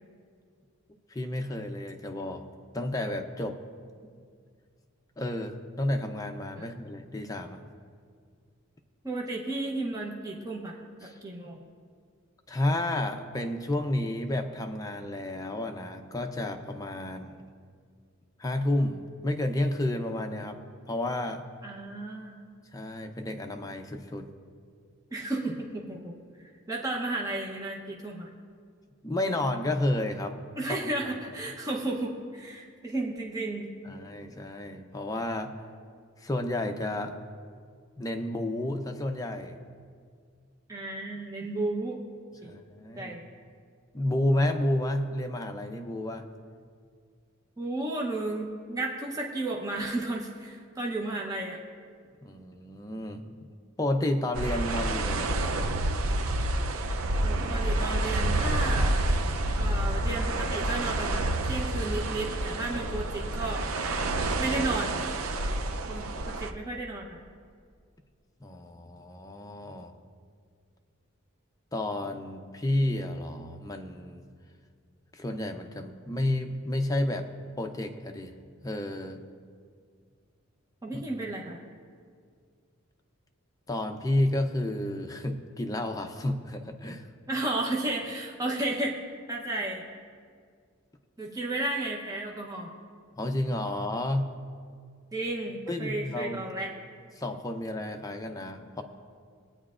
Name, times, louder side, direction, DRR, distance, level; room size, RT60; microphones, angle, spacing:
voice 1, 1.1-2.4 2.7-3.6 5.2-7.7 11.0-11.2 12.5-17.4 18.4-20.6 20.9-21.4 22.7-24.3 29.0-30.4 30.7-30.9 33.8-35.5 36.2-37.1 38.0-39.6 42.4-43.2 43.9-46.2 52.2-53.2 53.8-55.3 68.4-69.9 71.7-74.2 75.1-77.3 77.6-78.3 78.6-79.2 80.9-81.0 83.7-87.1 93.2-94.3 95.7-96.4 97.2-98.8, left 1 dB, 15° left, 5 dB, 0.6 m, -31 dB
voice 2, 9.0-11.6 21.6-22.4 25.1-26.1 26.7-28.3 30.5-33.7 40.7-42.0 42.4-42.5 43.0-43.2 47.6-51.6 57.2-59.0 59.6-63.7 64.4-65.1 65.9-67.2 80.8-81.6 87.3-89.0 89.3-89.8 91.2-92.7 95.1-96.7, right 2 dB, 15° right, -1 dB, 0.8 m, -33 dB
sound 1, 54.4-66.5, right 1 dB, 85° right, 0.6 m, -28 dB
20.5 x 9.4 x 2.5 m, 2.1 s
head